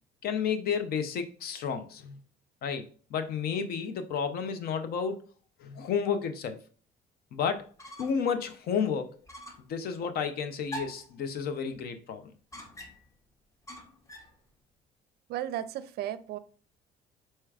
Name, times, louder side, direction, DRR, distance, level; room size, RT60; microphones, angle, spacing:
voice 1, 0.2-2.2 2.6-5.2 5.6-6.6 7.3-7.7 8.0-9.1 9.7-12.3, left 6 dB, 65° left, 0.6 m, -31 dB
sound 1, 7.6-8.3 8.7-8.8 9.3-9.7 10.7-11.1 12.5-13.2 13.7-14.4, equal, 20° left, 0.8 m, -44 dB
voice 2, 15.3-16.4, right 12 dB, 70° right, 0.4 m, -34 dB
4.5 x 4.4 x 2.4 m
cardioid pair, 110°, 17 cm